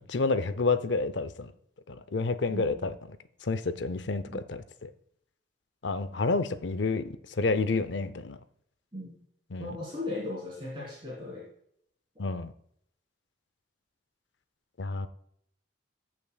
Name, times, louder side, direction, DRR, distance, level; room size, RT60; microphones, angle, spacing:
voice 1, 0.0-1.5 1.9-2.9 3.4-4.9 5.8-8.4 9.5-9.8 12.2-12.5 14.8-15.1, left 3 dB, 75° left, 12 dB, 0.6 m, -29 dB
voice 2, 2.5-2.9 4.2-4.4 8.9-9.2 9.6-11.5, left 2 dB, 25° right, -6 dB, 3.2 m, -37 dB
14.5 x 6.0 x 2.3 m, 0.70 s
head